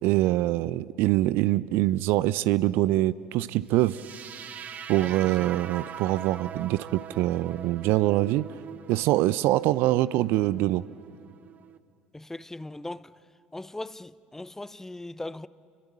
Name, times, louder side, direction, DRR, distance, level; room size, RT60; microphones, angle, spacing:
voice 1, 0.0-4.0 4.9-8.5 8.9-10.8, right 16 dB, 55° right, 0.6 m, -24 dB
sound 1, 3.8-11.8, right 8 dB, 40° right, 1.1 m, -42 dB
voice 2, 4.9-5.5 12.1-13.1 13.5-15.5, left 2 dB, 10° left, 0.7 m, -39 dB
30.0 x 22.0 x 8.5 m
figure-of-eight pair, 60°, 4 cm